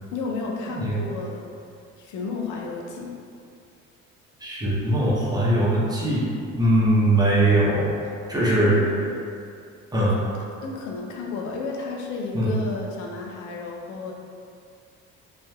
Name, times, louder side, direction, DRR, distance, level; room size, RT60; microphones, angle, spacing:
voice 1, 0.1-1.5 2.0-3.1 8.4-9.2 9.9-10.1 10.3-14.1, left 4 dB, 85° left, -1 dB, 0.5 m, -32 dB
voice 2, 4.4-6.3 6.5-7.9 8.3-8.8 9.9-10.2 12.3-12.6, right 1 dB, 15° right, -6 dB, 0.6 m, -21 dB
3.3 x 2.6 x 2.2 m, 2.4 s
cardioid pair, 110°, 30 cm